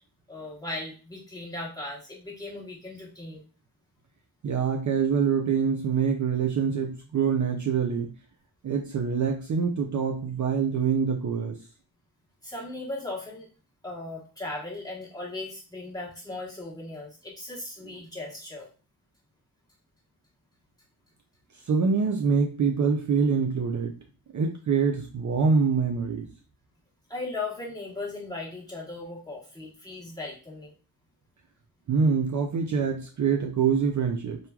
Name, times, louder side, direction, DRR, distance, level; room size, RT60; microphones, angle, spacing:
voice 1, 0.3-3.4 12.4-13.5 13.8-18.7 27.1-30.7, left 2 dB, 10° left, -5 dB, 1.1 m, -37 dB
voice 2, 4.4-8.1 8.6-11.6 21.7-23.9 24.3-26.3 31.9-34.4, right 6 dB, 45° right, 2 dB, 0.5 m, -25 dB
3.0 x 2.3 x 2.3 m, 0.35 s
cardioid pair, 80°, 41 cm